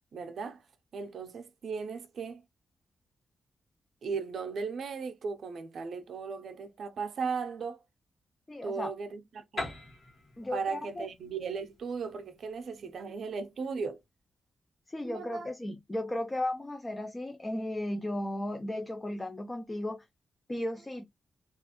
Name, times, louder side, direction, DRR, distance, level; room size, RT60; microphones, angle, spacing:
voice 1, 0.1-0.7 0.9-2.4 4.0-7.8 8.6-9.7 10.5-14.0 15.0-15.5, right 5 dB, 60° right, 0.5 m, -37 dB
voice 2, 8.5-8.9 10.4-11.1 14.9-20.1 20.5-21.1, left 1 dB, 15° left, 0.3 m, -35 dB
Piano, 9.6-13.2, left 2 dB, 45° left, 1.1 m, -42 dB
2.9 x 2.4 x 2.8 m
wide cardioid pair, 170°, 0 cm